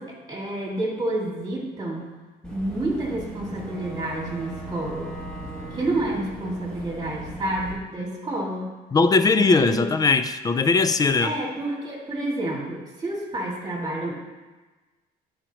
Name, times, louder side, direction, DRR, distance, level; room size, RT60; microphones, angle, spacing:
voice 1, 0.0-2.1 2.5-5.1 5.7-8.7 9.3-9.9 11.2-14.2, right 1 dB, 25° right, -2 dB, 2.1 m, -29 dB
Boat Water vehicle / Engine, 2.4-7.7, right 1 dB, 5° left, 2.1 m, -37 dB
voice 2, 8.9-11.3, left 4 dB, 20° left, 11 dB, 0.4 m, -20 dB
10.0 x 5.0 x 2.9 m, 1.3 s
cardioid pair, 110°, 17 cm